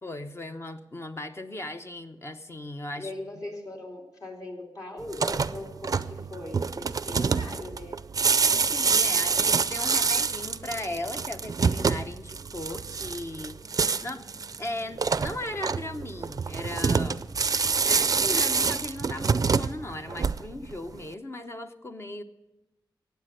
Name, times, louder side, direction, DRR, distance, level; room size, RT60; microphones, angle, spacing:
voice 1, 0.0-3.1 8.3-13.6 14.0-14.2 14.6-17.2 17.9-22.2, left 1 dB, 30° left, 7 dB, 0.9 m, -37 dB
voice 2, 3.0-8.0, left 2 dB, 45° left, 1 dB, 3.2 m, -40 dB
sound 1, 5.0-20.7, right 5 dB, 45° right, 0.5 m, -26 dB
15.5 x 9.3 x 6.6 m, 0.98 s
wide cardioid pair, 85°, 8 cm